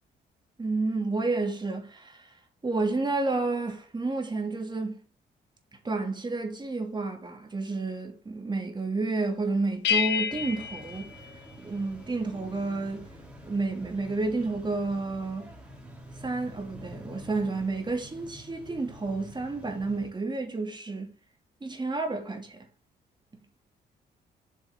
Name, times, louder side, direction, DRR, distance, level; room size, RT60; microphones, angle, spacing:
voice 1, 0.6-2.4 2.6-5.0 5.8-11.1 11.6-13.1 13.4-15.5 16.1-21.1 21.6-22.6, right 3 dB, 25° right, 2.7 m, -30 dB
sound 1, 9.8-12.1, left 8 dB, 80° left, 0.9 m, -30 dB
sound 2, 10.3-20.1, equal, 5° right, 3.4 m, -47 dB
8.0 x 6.9 x 3.8 m
cardioid pair, 90°, 18 cm